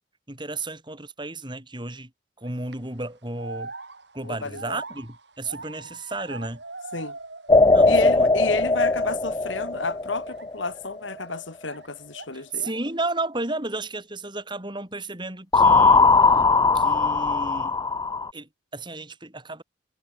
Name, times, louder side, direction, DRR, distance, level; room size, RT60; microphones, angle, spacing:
voice 1, 0.3-2.1 2.4-3.7 4.1-6.6 7.7-8.3 12.3-16.4 16.7-17.8 18.3-19.6, right 2 dB, 25° right, 4.4 m, -33 dB
sound 1, 2.4-2.7 3.3-7.7 8.0-8.8 9.2-9.4 10.2-11.9 12.1-12.9, right 3 dB, 60° right, 5.7 m, -42 dB
voice 2, 4.2-4.8 6.9-7.2 7.9-12.7, left 3 dB, 75° left, 3.2 m, -31 dB
sound 2, 7.5-10.7 15.5-18.3, left 3 dB, 20° left, 0.6 m, -19 dB
head